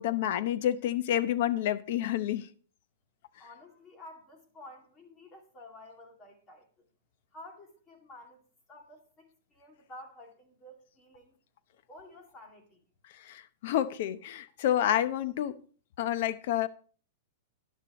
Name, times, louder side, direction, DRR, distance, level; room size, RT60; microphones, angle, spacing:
voice 1, 0.0-2.5 13.2-15.6 16.0-16.7, left 11 dB, 50° left, 0.7 m, -29 dB
voice 2, 3.3-6.9 7.3-8.4 8.7-11.4 11.9-12.8, left 1 dB, 20° left, 2.4 m, -51 dB
13.5 x 11.0 x 3.1 m
supercardioid pair, 165°, 0 cm